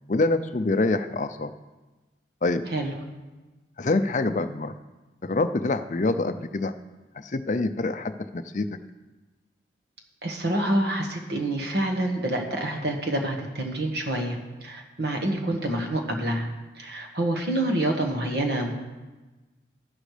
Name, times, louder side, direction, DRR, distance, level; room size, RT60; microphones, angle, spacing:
voice 1, 0.1-1.5 2.4-2.6 3.8-4.7 5.2-6.7 7.1-8.8, left 2 dB, 40° left, 10 dB, 0.5 m, -26 dB
voice 2, 10.2-16.5 16.8-18.7, right 1 dB, 60° right, 2 dB, 1.6 m, -27 dB
13.5 x 11.5 x 3.3 m, 1.2 s
head